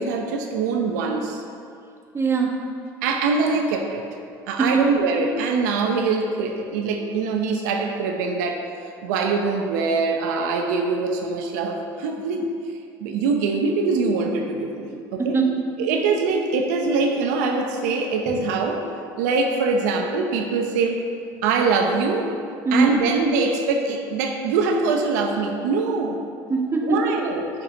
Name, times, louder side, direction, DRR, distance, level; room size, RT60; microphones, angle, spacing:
voice 1, 0.0-1.4 3.0-4.0 4.5-8.7 9.0-12.5 13.0-15.4 15.8-18.8 19.2-21.0 21.4-22.3 22.7-26.2 26.8-27.4, right 4 dB, 90° right, 3 dB, 0.7 m, -23 dB
voice 2, 2.1-2.6 4.6-4.9 14.9-15.7 18.2-18.4 22.6-23.0 26.5-27.3, right 4 dB, 30° right, 1 dB, 1.3 m, -22 dB
6.6 x 6.0 x 5.1 m, 2.4 s
supercardioid pair, 90°, 9 cm